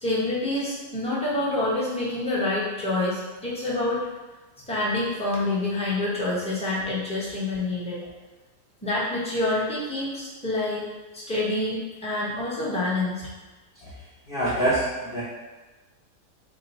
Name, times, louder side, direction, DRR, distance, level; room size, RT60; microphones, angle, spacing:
voice 1, 0.0-4.0 4.7-8.0 8.8-10.9 11.1-13.3, left 2 dB, 5° left, -8 dB, 0.5 m, -27 dB
voice 2, 14.3-15.2, right 1 dB, 60° left, -9 dB, 0.5 m, -25 dB
3.7 x 2.2 x 4.2 m, 1.2 s
omnidirectional pair, 1.8 m